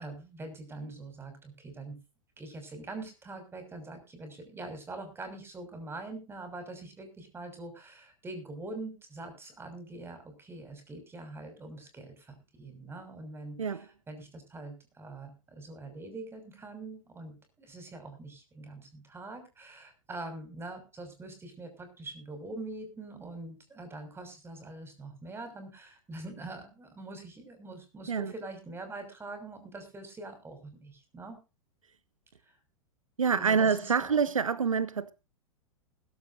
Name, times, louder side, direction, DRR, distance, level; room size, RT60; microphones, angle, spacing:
voice 1, 0.0-2.0 2.4-31.4 32.5-32.6 33.3-34.3, right 2 dB, 15° right, 6.2 m, -44 dB
voice 2, 33.2-35.1, right 6 dB, 75° right, 0.8 m, -26 dB
21.5 x 12.0 x 2.7 m
figure-of-eight pair, 95°, 17 cm